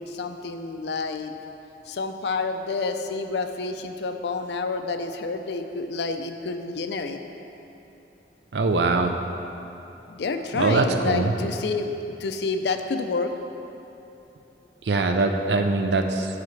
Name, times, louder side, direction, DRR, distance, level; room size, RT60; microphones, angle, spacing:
voice 1, 0.0-1.3 1.9-7.2 10.1-13.3, left 3 dB, 75° left, 7 dB, 0.5 m, -29 dB
voice 2, 8.5-9.1 10.6-11.3 14.9-16.3, right 3 dB, 75° right, 5 dB, 0.5 m, -22 dB
12.5 x 4.8 x 3.2 m, 3.0 s
head